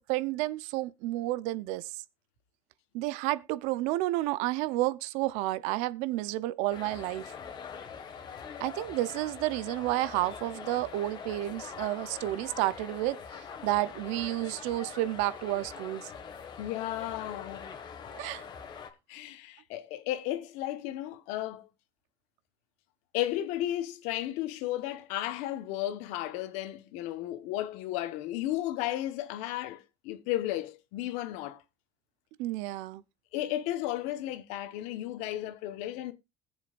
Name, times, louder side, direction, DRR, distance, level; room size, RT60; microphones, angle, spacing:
voice 1, 0.1-1.9 2.9-7.3 8.6-16.1 18.2-18.4 32.4-33.0, right 17 dB, 85° right, 0.7 m, -31 dB
sound 1, 6.7-18.9, left 6 dB, 40° left, 1.8 m, -43 dB
voice 2, 16.6-17.7 19.1-21.7 23.1-31.6 33.3-36.1, left 14 dB, 80° left, 1.2 m, -34 dB
20.5 x 7.3 x 2.5 m
cardioid pair, 125°, 12 cm